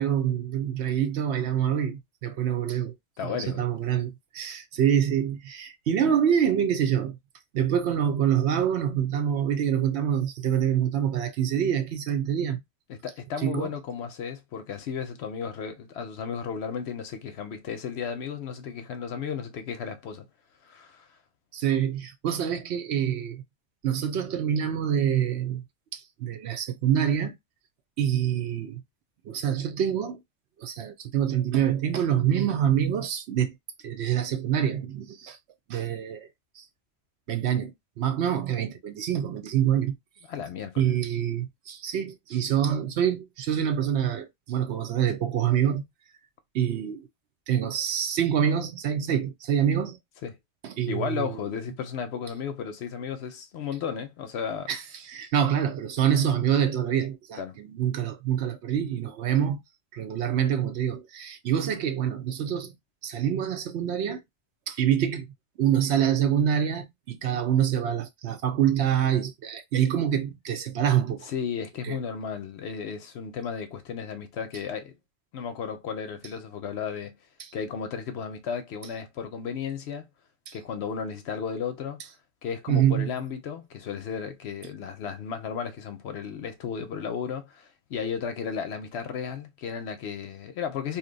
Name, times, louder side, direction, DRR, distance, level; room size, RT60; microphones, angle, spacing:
voice 1, 0.0-2.9 3.2-7.2 7.5-12.6 13.4-13.7 21.5-23.4 23.8-25.6 25.9-27.3 28.0-28.8 29.3-30.2 30.6-33.6 33.8-35.4 35.7-36.3 36.6-36.7 37.3-39.9 40.8-45.8 46.5-47.1 47.5-50.0 50.6-51.5 54.7-59.6 59.9-62.7 63.0-64.2 64.7-65.3 65.6-71.3 71.8-72.0 80.5-80.6 82.7-83.1, right 9 dB, 65° right, 0.8 m, -26 dB
voice 2, 3.2-3.6 12.9-20.3 20.6-21.1 40.3-40.9 50.2-50.4 50.9-54.7 57.4-57.6 71.2-74.9 75.3-77.1 77.5-80.1 80.5-82.0 82.4-91.0, left 7 dB, 65° left, 0.8 m, -34 dB
2.8 x 2.1 x 3.8 m
omnidirectional pair, 1.3 m